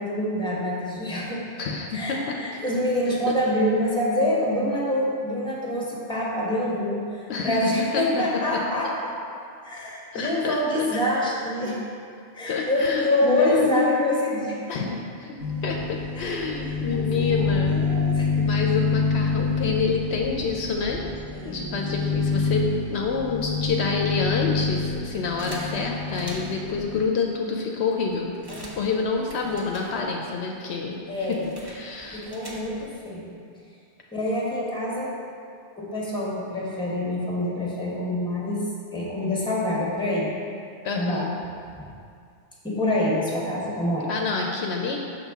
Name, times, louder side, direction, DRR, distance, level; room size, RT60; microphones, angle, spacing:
voice 1, 0.0-1.4 1.9-9.1 9.6-11.8 12.3-14.6 16.1-16.3 16.9-18.3 21.3-21.8 28.5-28.7 31.1-31.4 32.1-33.4 34.1-35.2 35.8-38.7 38.9-40.4 40.9-41.3 41.7-41.8 42.6-44.1, left 1 dB, 5° left, -5 dB, 1.1 m, -26 dB
voice 2, 1.6-2.6 7.3-8.2 8.5-8.6 10.1-10.9 12.5-14.2 14.7-17.8 18.3-21.0 21.4-28.3 28.8-31.4 31.6-32.2 40.8-41.3 44.1-45.0, left 4 dB, 70° left, 0 dB, 0.8 m, -28 dB
sound 1, 15.4-27.0, left 4 dB, 65° right, 2.0 m, -27 dB
sound 2, 25.4-26.7 27.4-27.5 27.7-30.4 30.6-33.0, right 1 dB, 20° right, 0.9 m, -44 dB
6.8 x 5.6 x 3.5 m, 2.4 s
omnidirectional pair, 1.2 m